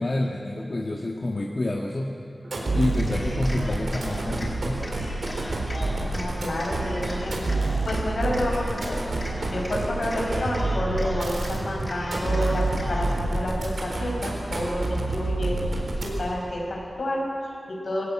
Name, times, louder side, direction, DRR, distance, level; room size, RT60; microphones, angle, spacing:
voice 1, 0.0-2.1 2.7-4.9 13.9-14.0 15.0-15.1, left 2 dB, 45° left, -1 dB, 1.6 m, -28 dB
sound 1, 2.4-16.4, right 2 dB, 80° right, 4.1 m, -28 dB
Cheering, 2.9-4.5 4.8-6.3 6.6-8.0 8.3-9.8 10.0-11.5 11.8-13.2, left 1 dB, 20° left, 5.1 m, -39 dB
voice 2, 6.1-9.0 9.4-15.6 16.0-18.1, left 1 dB, 80° left, -2 dB, 5.9 m, -29 dB
20.5 x 17.5 x 9.1 m, 2.7 s
wide cardioid pair, 95°, 0 cm